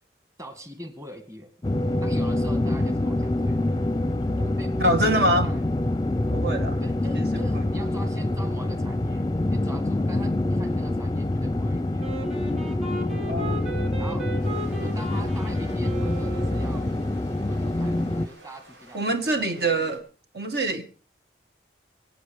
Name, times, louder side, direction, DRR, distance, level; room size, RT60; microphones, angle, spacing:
voice 1, 0.4-1.5 2.0-3.7 4.4-5.6 6.8-12.3 14.0-14.3 14.8-16.8 17.5-19.9, right 1 dB, 15° right, 2.0 m, -42 dB
sound 1, 1.6-18.3, left 1 dB, 20° left, 0.6 m, -26 dB
voice 2, 4.8-5.5 6.3-6.8 7.1-7.2 7.5-7.6 13.3-13.6 18.9-20.0 20.3-20.8, right 1 dB, 60° right, 2.0 m, -24 dB
Wind instrument woodwind instrument, 12.0-17.0, right 2 dB, 35° right, 6.4 m, -37 dB
sound 2, 14.4-20.0, right 1 dB, 85° right, 7.2 m, -51 dB
24.5 x 9.0 x 5.2 m
head